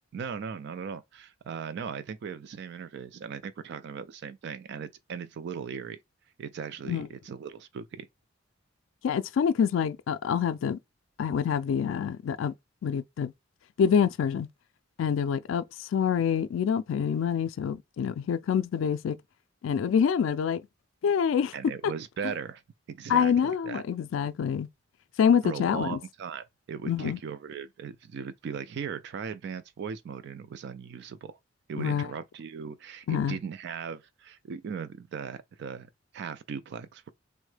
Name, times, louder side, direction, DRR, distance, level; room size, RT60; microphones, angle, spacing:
voice 1, 0.1-6.0 6.4-8.1 21.5-22.6 22.9-23.8 25.4-31.4 31.7-37.1, right 6 dB, 60° right, 0.3 m, -38 dB
voice 2, 9.0-10.8 11.2-12.5 12.8-13.3 13.8-14.5 15.0-19.2 19.6-20.6 21.0-21.5 23.1-24.7 25.2-26.0 26.9-27.2 31.8-32.1 33.1-33.4, left 7 dB, 80° left, 0.3 m, -26 dB
3.5 x 2.1 x 3.2 m
head